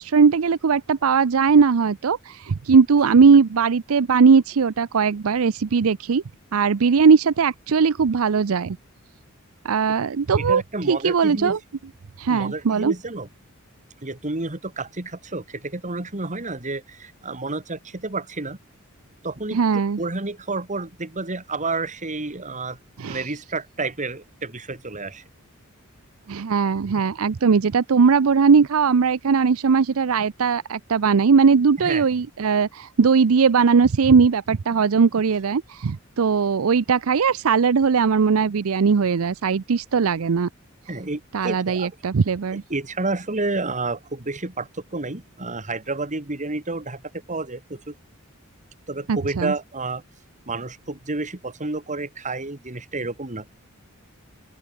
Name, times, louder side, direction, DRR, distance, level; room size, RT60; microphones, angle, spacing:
voice 1, 0.0-6.2 6.5-8.8 9.6-10.6 10.9-11.6 12.2-12.9 19.5-20.0 23.0-23.2 26.3-40.5 41.3-42.6 49.1-49.5, right 5 dB, 70° right, 0.5 m, -19 dB
voice 2, 10.3-11.6 12.3-13.3 14.0-18.6 19.2-19.6 20.0-22.8 23.1-25.2 31.8-32.1 40.9-41.9 42.7-47.0 47.3-47.9 48.9-50.0 50.5-53.5, right 3 dB, 35° right, 2.5 m, -30 dB
open air
head